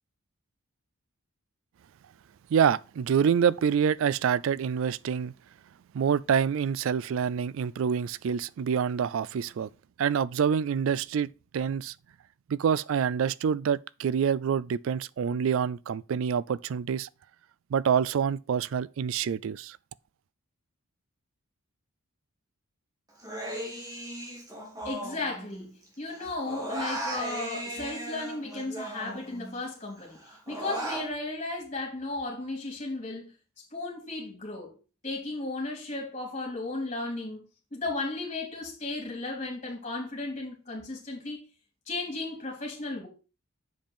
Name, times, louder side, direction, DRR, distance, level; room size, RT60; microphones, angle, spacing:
voice 1, 2.5-5.3 5.9-9.7 10.0-11.9 12.5-17.1 17.7-19.8, right 7 dB, 65° right, 0.3 m, -26 dB
Human voice, 23.2-25.8 26.1-29.6 30.0-31.1, right 1 dB, 15° right, 1.8 m, -37 dB
voice 2, 24.8-30.2 30.5-33.3 33.7-34.8 35.0-37.4 37.7-41.4 41.9-43.1, left 2 dB, 30° left, 3.5 m, -35 dB
7.7 x 5.3 x 4.3 m
head